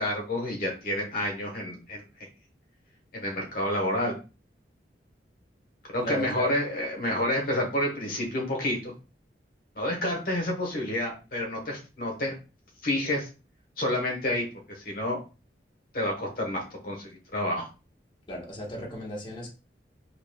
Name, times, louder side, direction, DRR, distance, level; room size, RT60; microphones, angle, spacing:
voice 1, 0.0-2.3 3.1-4.2 5.9-8.9 9.8-12.3 12.8-13.3 13.8-15.2 15.9-17.7, left 1 dB, 55° left, 0 dB, 1.1 m, -29 dB
voice 2, 6.0-6.5 18.3-19.5, equal, 30° left, -2 dB, 1.2 m, -35 dB
4.9 x 2.9 x 2.2 m, 0.32 s
head